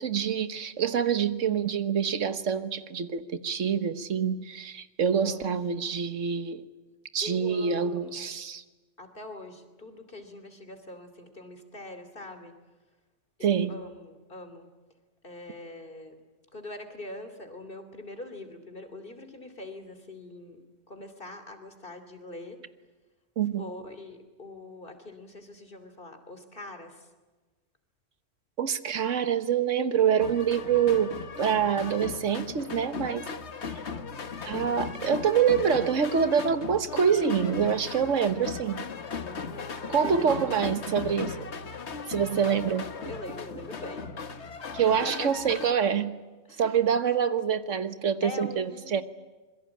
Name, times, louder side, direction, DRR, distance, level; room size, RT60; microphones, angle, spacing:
voice 1, 0.0-6.6 7.1-8.6 13.4-13.7 23.4-23.6 28.6-31.1 31.4-33.3 34.4-38.8 39.9-41.5 42.1-42.9 44.7-46.1 46.6-49.0, right 7 dB, 85° right, 1.5 m, -26 dB
voice 2, 5.2-5.8 7.2-8.3 9.0-12.5 13.4-14.7 15.2-16.2 16.5-22.6 23.6-27.1 34.4-35.2 39.5-40.8 43.1-44.1 44.5-45.4 46.5-46.7 48.2-49.0, left 2 dB, 45° left, 3.1 m, -43 dB
sound 1, 30.2-45.7, left 5 dB, 65° left, 1.5 m, -37 dB
26.0 x 22.5 x 8.7 m
omnidirectional pair, 1.2 m